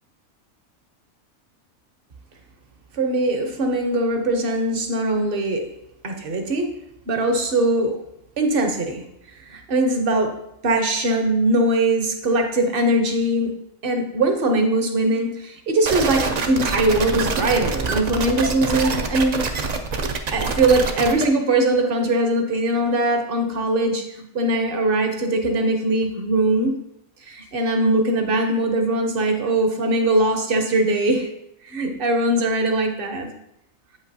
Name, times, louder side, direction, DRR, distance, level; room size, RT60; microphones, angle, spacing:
voice 1, 2.9-5.7 6.0-6.7 7.1-7.9 8.4-9.0 9.3-10.3 10.6-13.5 13.8-19.4 20.3-26.7 27.2-31.3 31.6-33.3, right 1 dB, 50° right, 5 dB, 0.9 m, -21 dB
sound 1, 15.8-21.2, right 4 dB, 65° right, 0.4 m, -25 dB
8.0 x 5.2 x 2.7 m, 0.79 s
omnidirectional pair, 1.4 m